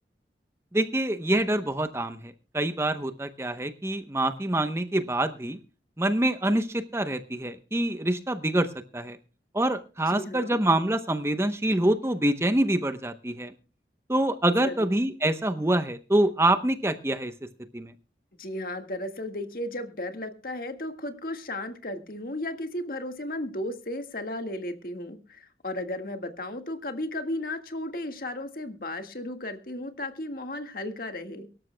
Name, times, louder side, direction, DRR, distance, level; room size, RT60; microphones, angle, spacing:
voice 1, 0.7-5.6 6.0-8.7 8.9-9.2 9.5-13.5 14.1-17.3 17.7-17.9, right 1 dB, 15° right, 10 dB, 0.8 m, -26 dB
voice 2, 10.1-10.6 14.6-14.9 18.4-31.5, left 1 dB, 55° left, 7 dB, 1.8 m, -34 dB
24.0 x 12.5 x 2.2 m, 0.34 s
head